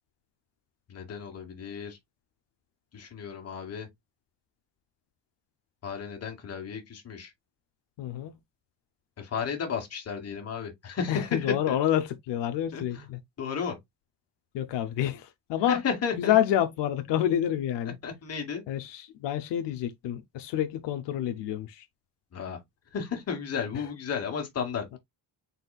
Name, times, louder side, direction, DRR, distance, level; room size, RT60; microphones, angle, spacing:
voice 1, 0.9-2.0 2.9-3.9 5.8-7.3 9.2-11.8 12.7-13.1 13.4-13.8 15.7-16.3 18.0-18.6 22.3-22.6 22.9-25.0, left 6 dB, 35° left, 1.4 m, -33 dB
voice 2, 8.0-8.3 11.1-13.2 14.5-15.8 16.2-18.0 18.7-21.8, left 11 dB, 85° left, 0.7 m, -28 dB
4.2 x 4.1 x 2.3 m
cardioid pair, 155°, 41 cm